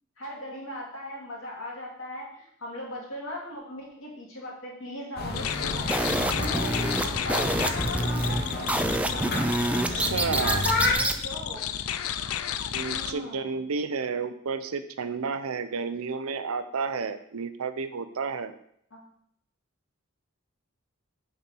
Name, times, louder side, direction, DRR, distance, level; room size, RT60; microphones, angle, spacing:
voice 1, 0.2-5.9 6.2-8.4 10.9-11.7 12.8-13.5 18.9-19.0, left 1 dB, 65° left, -3 dB, 2.6 m, -38 dB
sound 1, 5.2-10.9, left 2 dB, 45° left, 1.3 m, -31 dB
sound 2, 5.3-13.1, left 9 dB, 85° left, 0.4 m, -33 dB
sound 3, 5.9-11.2, right 1 dB, 5° right, 0.3 m, -28 dB
voice 2, 9.9-10.7 12.7-18.5, right 5 dB, 85° right, 11 dB, 0.6 m, -31 dB
6.7 x 4.4 x 6.2 m, 0.68 s
head